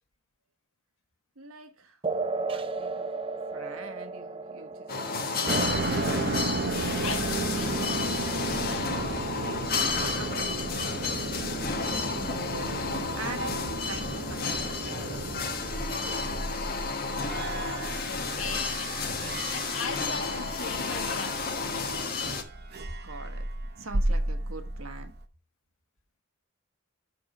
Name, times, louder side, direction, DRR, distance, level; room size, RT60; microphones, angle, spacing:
voice 1, 1.4-3.2 3.5-6.2 10.2-16.4 22.8-23.5 23.8-25.1, right 3 dB, 85° right, 1.3 m, -44 dB
sound 1, 2.0-9.1, right 3 dB, 25° right, 0.5 m, -36 dB
sound 2, 4.9-22.4, left 4 dB, 45° left, 1.2 m, -32 dB
sound 3, 5.5-25.2, right 2 dB, 50° right, 0.8 m, -33 dB
voice 2, 7.0-8.0 8.4-8.9 18.1-19.0 19.5-22.2, left 5 dB, 70° left, 1.6 m, -39 dB
6.3 x 6.0 x 5.2 m
head